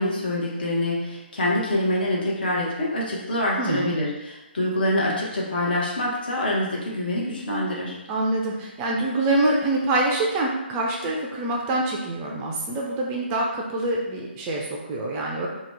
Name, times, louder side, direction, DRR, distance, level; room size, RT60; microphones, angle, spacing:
voice 1, 0.0-8.0, left 1 dB, 55° left, -3 dB, 0.9 m, -25 dB
voice 2, 3.6-4.0 8.1-15.5, right 2 dB, 20° right, -2 dB, 0.4 m, -25 dB
2.9 x 2.2 x 3.3 m, 1.0 s
figure-of-eight pair, 140°, 6 cm